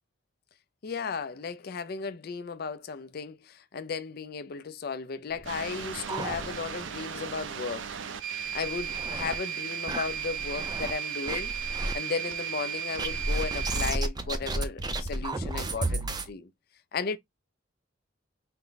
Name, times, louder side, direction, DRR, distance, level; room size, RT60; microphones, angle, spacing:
voice 1, 0.8-7.9 8.5-16.5 16.9-17.2, left 5 dB, 55° left, 0.4 m, -35 dB
sound 1, 5.4-6.9 7.3-7.4 7.7-7.8 8.4-9.4 9.9-10.9 11.3-11.9 13.0-16.3, right 2 dB, 20° right, 0.5 m, -32 dB
sound 2, 5.5-13.9, right 8 dB, 90° right, 0.5 m, -35 dB
4.4 x 2.0 x 3.9 m
head